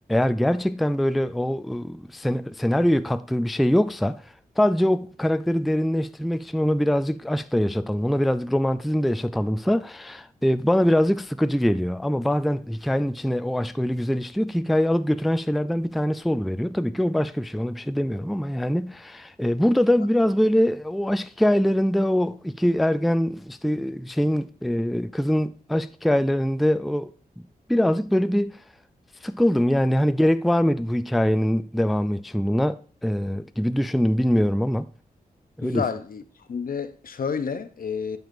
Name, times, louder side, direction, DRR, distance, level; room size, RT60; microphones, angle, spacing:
voice 1, 0.1-4.2 4.6-27.1 27.7-28.6 29.2-34.9 35.6-35.8, equal, ahead, 0.3 m, -23 dB
voice 2, 35.6-36.2 36.5-38.2, left 6 dB, 65° left, 0.6 m, -29 dB
9.1 x 6.8 x 2.6 m
wide cardioid pair, 80°, 16 cm